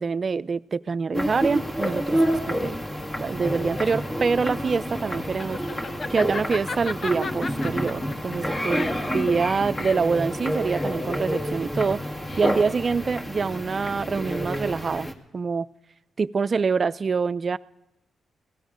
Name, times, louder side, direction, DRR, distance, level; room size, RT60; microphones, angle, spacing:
voice 1, 0.0-2.8 3.2-5.6 6.1-12.0 12.4-15.7 16.2-17.6, right 5 dB, 45° right, 17 dB, 0.4 m, -25 dB
sound 1, 1.1-15.1, equal, 30° left, 2.0 m, -29 dB
Laughter, 3.8-12.8, left 4 dB, 45° left, 0.8 m, -36 dB
17.0 x 14.0 x 5.1 m, 0.95 s
cardioid pair, 60°, 0 cm